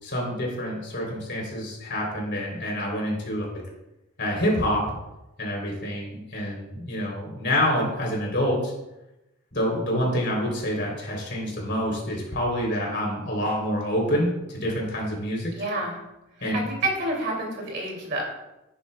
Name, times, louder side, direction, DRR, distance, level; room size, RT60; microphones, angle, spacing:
voice 1, 0.0-3.5 4.2-4.9 5.4-8.7 9.5-15.5 16.4-16.7, equal, 50° left, -1 dB, 3.3 m, -27 dB
voice 2, 15.5-16.0 16.5-18.2, right 2 dB, 50° right, 0 dB, 2.5 m, -28 dB
11.5 x 9.4 x 2.3 m, 0.95 s
head